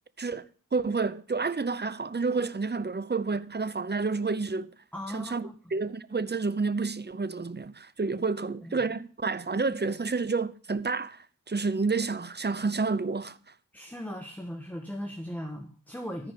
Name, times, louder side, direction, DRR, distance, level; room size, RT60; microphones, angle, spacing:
voice 1, 0.7-4.7 5.1-13.4, right 4 dB, 30° right, 0.7 m, -29 dB
voice 2, 4.9-5.5 8.6-8.8 13.7-16.3, equal, 5° left, 1.4 m, -38 dB
14.0 x 4.9 x 6.7 m
cardioid pair, 40°, 34 cm